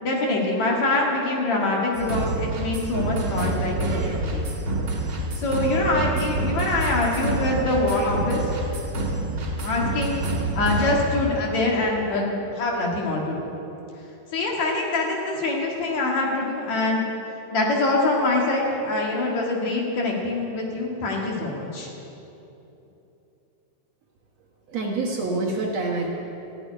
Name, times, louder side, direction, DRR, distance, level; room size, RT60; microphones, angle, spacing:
voice 1, 0.0-4.5 5.4-8.4 9.6-10.2 10.5-13.5 14.3-17.1 17.5-21.9, left 2 dB, 55° left, -1 dB, 2.9 m, -24 dB
sound 1, 1.9-11.1, right 2 dB, 45° right, 2.4 m, -27 dB
voice 2, 24.7-26.1, right 3 dB, 60° right, -1 dB, 2.1 m, -26 dB
14.5 x 7.9 x 9.8 m, 3.0 s
omnidirectional pair, 3.9 m